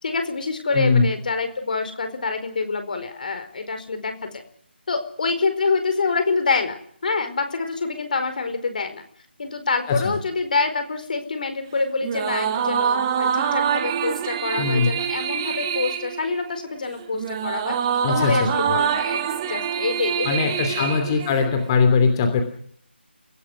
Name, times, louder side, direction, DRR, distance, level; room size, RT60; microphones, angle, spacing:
voice 1, 0.0-4.4 4.9-9.0 9.4-17.8 18.1-21.1, left 4 dB, 50° left, 9 dB, 4.6 m, -26 dB
voice 2, 0.7-1.1 9.9-10.2 14.6-14.9 18.0-18.5 20.2-22.4, left 5 dB, 25° left, 6 dB, 2.9 m, -20 dB
sound 1, 12.0-21.7, right 8 dB, 20° right, 1.8 m, -25 dB
30.0 x 18.0 x 6.3 m, 0.65 s
figure-of-eight pair, 155°, 6 cm